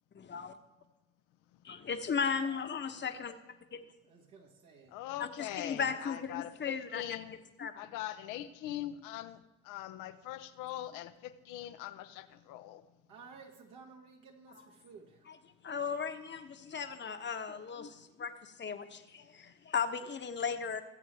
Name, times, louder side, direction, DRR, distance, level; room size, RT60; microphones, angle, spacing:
voice 1, 0.2-0.5 1.7-3.3 3.7-3.8 5.2-7.0 7.6-7.8 15.6-20.8, left 6 dB, 35° left, 8 dB, 1.1 m, -36 dB
voice 2, 4.0-4.9 13.1-15.3, right 5 dB, 70° right, 0 dB, 2.2 m, -54 dB
voice 3, 4.9-7.4 7.8-12.8, left 13 dB, 75° left, 10 dB, 0.8 m, -42 dB
19.0 x 7.7 x 3.4 m, 1.1 s
supercardioid pair, 65°, 31 cm